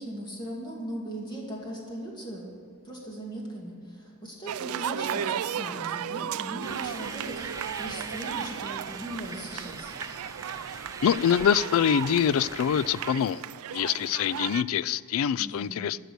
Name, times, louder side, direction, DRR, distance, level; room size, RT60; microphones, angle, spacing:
voice 1, 0.0-2.5 2.8-9.9 15.4-15.8, right 1 dB, 20° left, 2.5 m, -38 dB
sound 1, 4.5-14.6, right 9 dB, 80° right, 0.3 m, -35 dB
sound 2, 6.6-13.1, right 3 dB, 15° right, 0.5 m, -41 dB
voice 2, 11.0-13.4 13.7-16.0, left 8 dB, 70° left, 0.3 m, -25 dB
12.5 x 6.7 x 8.0 m
head